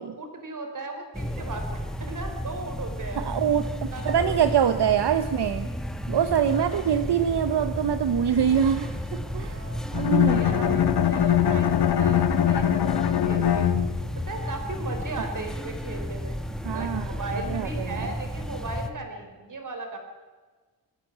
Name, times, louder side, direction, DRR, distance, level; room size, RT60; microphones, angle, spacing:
voice 1, 0.0-3.3 3.9-4.3 6.7-6.8 9.4-9.8 10.2-16.4 16.7-20.0, right 3 dB, 50° right, 5 dB, 4.5 m, -37 dB
sound 1, 1.1-18.9, equal, ahead, 1.5 m, -33 dB
voice 2, 3.2-5.7 6.1-9.6 9.9-10.8 16.6-17.2 17.5-18.1, right 8 dB, 75° right, 10 dB, 1.2 m, -25 dB
Bowed string instrument, 9.9-14.2, left 10 dB, 70° left, 1.4 m, -22 dB
23.0 x 15.5 x 9.4 m, 1.4 s
wide cardioid pair, 155°, 40 cm